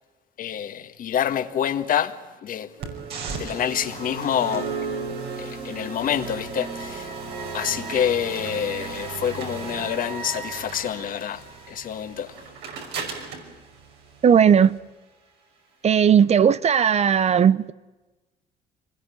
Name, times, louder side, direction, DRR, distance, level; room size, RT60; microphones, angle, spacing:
voice 1, 0.4-2.7 3.3-4.7 5.4-7.1 7.5-12.3, left 9 dB, 55° left, 1.8 m, -27 dB
sound 1, 2.8-14.8, right 5 dB, 80° right, 5.8 m, -35 dB
voice 2, 14.2-14.7 15.8-17.7, right 8 dB, 40° right, 0.8 m, -17 dB
25.5 x 20.5 x 9.2 m
cardioid pair, 110°, 17 cm